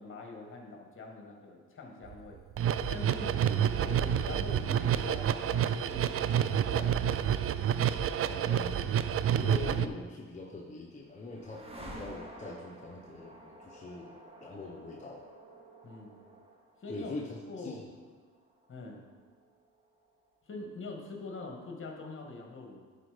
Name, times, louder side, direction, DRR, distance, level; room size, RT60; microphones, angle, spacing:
voice 1, 0.0-2.4 2.9-3.4 3.8-7.1 15.8-16.2 16.8-17.1 17.5-17.8 18.7-19.0 20.5-22.8, left 3 dB, 45° left, 1 dB, 1.7 m, -44 dB
sound 1, 2.1-2.2 2.5-9.9, right 9 dB, 50° right, 0.4 m, -28 dB
voice 2, 3.4-3.8 8.3-8.9 9.4-11.7 11.9-15.3 16.9-17.9, left 3 dB, 25° left, -2 dB, 0.9 m, -43 dB
sound 2, 10.5-20.3, right 1 dB, 20° right, 1.6 m, -51 dB
10.5 x 4.4 x 5.0 m, 1.5 s
cardioid pair, 90°, 30 cm